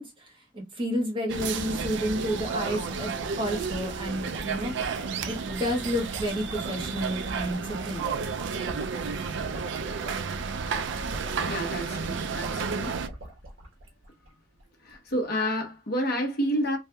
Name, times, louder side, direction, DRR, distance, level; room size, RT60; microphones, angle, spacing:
voice 1, 0.0-4.8 5.2-8.0, equal, 25° right, 1.2 m, -31 dB
sound 1, 1.3-13.1, right 5 dB, 60° right, 0.4 m, -32 dB
sound 2, 1.5-14.3 14.6-14.7 14.9-15.1, equal, 85° right, 1.2 m, -43 dB
voice 2, 11.5-12.9 14.8-16.8, equal, 50° left, 1.1 m, -29 dB
3.3 x 3.2 x 2.3 m
head